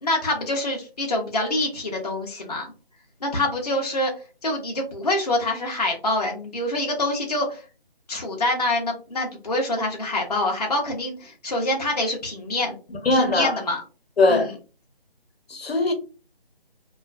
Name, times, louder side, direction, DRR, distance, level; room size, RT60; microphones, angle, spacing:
voice 1, 0.0-2.7 3.2-4.1 4.4-7.6 8.1-12.7 13.1-13.8 14.3-14.5, left 1 dB, 40° left, 0.5 m, -26 dB
voice 2, 12.9-13.6 14.2-14.5 15.5-15.9, left 2 dB, 90° left, 0.9 m, -20 dB
2.3 x 2.3 x 2.3 m
figure-of-eight pair, 175°, 30 cm